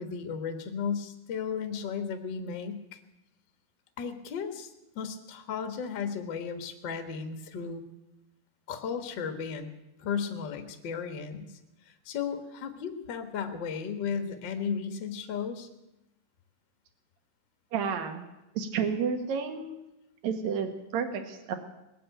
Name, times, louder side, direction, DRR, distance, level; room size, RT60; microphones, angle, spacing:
voice 1, 0.0-3.0 4.0-4.7 4.9-7.8 8.7-9.7 10.0-11.5 11.9-15.7, left 6 dB, 55° left, 7 dB, 1.3 m, -35 dB
voice 2, 17.7-18.2 18.6-19.7 20.2-21.5, right 6 dB, 60° right, 6 dB, 2.5 m, -31 dB
20.0 x 7.7 x 9.1 m, 0.95 s
omnidirectional pair, 3.9 m